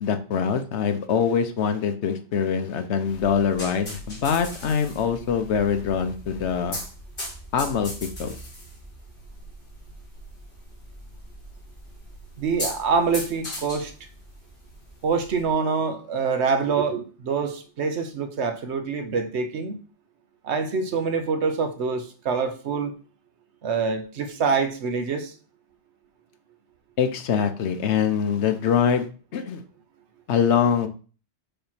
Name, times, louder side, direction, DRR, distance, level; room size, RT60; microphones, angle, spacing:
voice 1, 0.0-6.8 7.5-8.4 27.0-29.6 30.3-30.9, left 7 dB, 75° left, 1.1 m, -24 dB
sound 1, 3.1-15.5, equal, 50° left, 2.4 m, -39 dB
voice 2, 12.4-13.9 15.0-19.8 20.4-22.9 23.6-25.3, right 5 dB, 75° right, 1.1 m, -25 dB
6.8 x 3.0 x 5.7 m
omnidirectional pair, 1.2 m